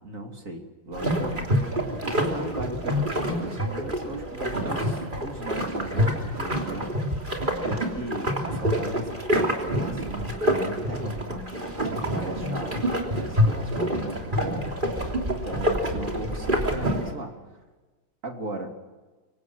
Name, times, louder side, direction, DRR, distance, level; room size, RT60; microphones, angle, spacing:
voice 1, 0.0-6.9 7.2-7.3 7.6-17.3 18.2-18.7, right 2 dB, 40° right, 3 dB, 3.1 m, -37 dB
sound 1, 0.9-17.1, equal, 25° right, 3.3 m, -27 dB
28.0 x 24.0 x 6.3 m, 1.3 s
omnidirectional pair, 2.1 m